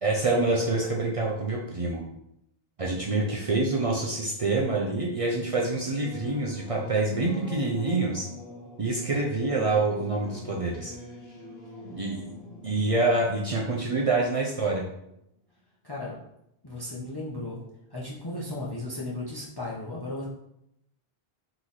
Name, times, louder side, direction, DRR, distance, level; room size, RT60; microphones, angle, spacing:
voice 1, 0.0-2.0 2.8-8.3 8.8-10.9 11.9-12.3 12.6-14.9, right 2 dB, 45° right, -2 dB, 0.5 m, -26 dB
Singing / Musical instrument, 5.0-15.1, left 2 dB, 75° left, 1.5 m, -45 dB
voice 2, 16.6-17.6 17.9-20.2, left 2 dB, 25° left, -4 dB, 0.7 m, -35 dB
3.8 x 3.0 x 4.0 m, 0.79 s
omnidirectional pair, 1.0 m